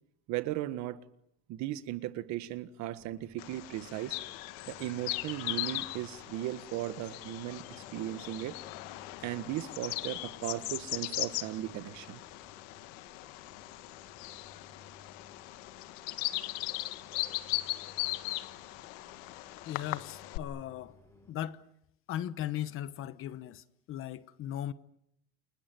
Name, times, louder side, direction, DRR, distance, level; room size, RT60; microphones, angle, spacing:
voice 1, 0.3-1.0 1.5-4.2 4.7-8.6 9.2-12.2, right 14 dB, 55° right, 1.7 m, -37 dB
sound 1, 2.9-21.3, left 2 dB, 5° left, 6.4 m, -60 dB
Bird vocalization bird call bird song, 3.4-20.4, left 18 dB, 75° left, 1.5 m, -39 dB
voice 2, 19.7-20.9 21.3-21.6 22.1-24.7, left 11 dB, 40° left, 1.1 m, -37 dB
29.0 x 21.0 x 9.3 m
cardioid pair, 160°, 33 cm